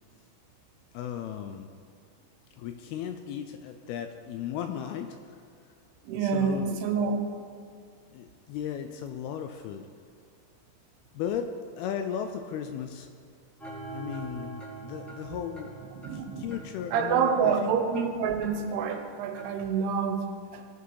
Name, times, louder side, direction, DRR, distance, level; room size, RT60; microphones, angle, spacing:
voice 1, 0.9-1.7 2.6-5.2 6.2-6.8 8.1-9.9 11.1-13.1 13.9-15.7 16.1-17.7, left 9 dB, 80° left, 7 dB, 2.3 m, -36 dB
voice 2, 6.0-7.2 16.0-16.5 16.9-20.6, right 6 dB, 80° right, 5 dB, 3.0 m, -27 dB
sound 1, 13.6-19.6, right 3 dB, ahead, 0.6 m, -45 dB
17.0 x 6.1 x 4.8 m, 2.3 s
omnidirectional pair, 4.7 m